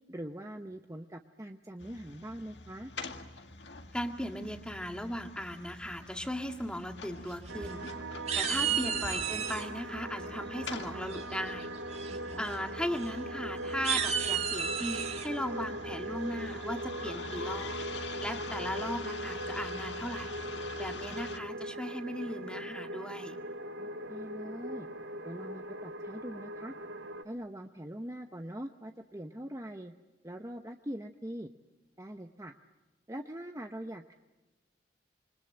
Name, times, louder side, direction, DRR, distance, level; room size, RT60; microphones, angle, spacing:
voice 1, 0.1-2.9 8.5-8.9 12.1-12.4 23.8-24.9 25.2-26.7 27.2-29.9 30.2-31.5 32.0-32.5 33.1-34.1, equal, 15° right, 5 dB, 0.9 m, -42 dB
sound 1, 1.8-21.4, left 3 dB, 70° left, 2.0 m, -45 dB
voice 2, 3.9-7.8 8.1-11.7 12.1-17.8 18.2-20.3 20.8-23.4, equal, 5° left, 4 dB, 1.9 m, -37 dB
sound 2, 7.3-7.9 8.3-9.7 11.1-11.5 11.9-12.2 12.4-12.5 12.9-13.1 13.7-15.3, right 7 dB, 35° right, 2.0 m, -32 dB
sound 3, 7.5-27.2, right 1 dB, 70° right, 1.7 m, -40 dB
27.0 x 25.0 x 8.8 m, 1.1 s
head